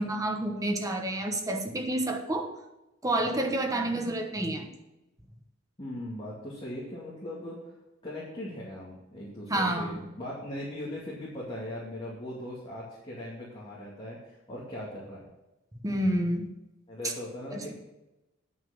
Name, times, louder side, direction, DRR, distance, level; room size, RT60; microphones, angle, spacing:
voice 1, 0.0-2.5 3.0-4.7 9.5-10.0 15.8-16.5 17.5-17.7, right 1 dB, 15° right, 4 dB, 1.1 m, -29 dB
voice 2, 3.7-4.2 5.8-7.7 8.0-15.2 16.9-17.7, left 1 dB, 25° left, -7 dB, 2.4 m, -39 dB
9.4 x 6.2 x 6.0 m, 0.97 s
head